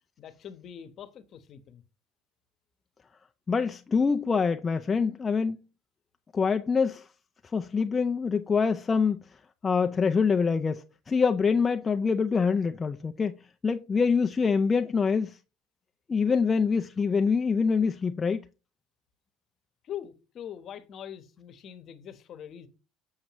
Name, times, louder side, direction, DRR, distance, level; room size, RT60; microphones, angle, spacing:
voice 1, 0.2-1.8 19.8-22.7, left 9 dB, 45° left, 1.0 m, -43 dB
voice 2, 3.5-5.6 6.3-7.1 7.5-9.2 9.6-13.3 13.6-15.4 16.1-18.4, left 5 dB, 20° left, 0.4 m, -25 dB
7.4 x 6.4 x 3.0 m
cardioid pair, 130°, 0 cm